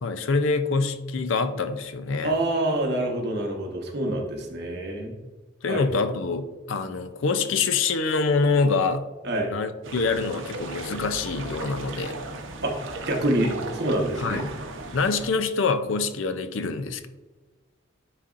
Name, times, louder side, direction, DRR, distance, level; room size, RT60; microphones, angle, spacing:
voice 1, 0.0-2.3 5.6-9.0 9.5-12.1 14.2-14.5 14.9-17.1, left 4 dB, 80° left, 9 dB, 0.5 m, -25 dB
voice 2, 2.2-5.1 5.7-6.0 9.2-9.5 12.6-12.7 13.1-14.4, right 1 dB, 60° right, 1 dB, 1.2 m, -26 dB
sound 1, 9.8-15.3, right 3 dB, 80° right, 0.8 m, -37 dB
9.7 x 4.2 x 2.5 m, 1.3 s
head